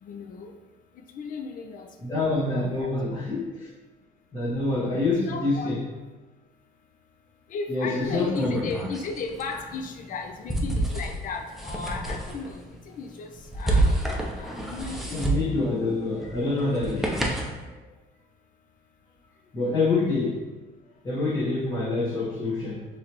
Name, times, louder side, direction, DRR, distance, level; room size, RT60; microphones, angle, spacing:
voice 1, 0.0-0.5 1.1-1.9 2.5-3.2 5.2-5.7 7.5-15.2, left 4 dB, 55° left, 5 dB, 0.6 m, -36 dB
voice 2, 2.0-3.7 4.3-5.9 7.7-8.6 15.1-17.3 17.6-17.8 19.5-20.4 21.0-22.8, left 2 dB, 25° left, -10 dB, 1.3 m, -26 dB
sound 1, 8.0-17.6, right 1 dB, ahead, 0.7 m, -30 dB
4.6 x 3.4 x 3.0 m, 1.2 s
cardioid pair, 110°, 17 cm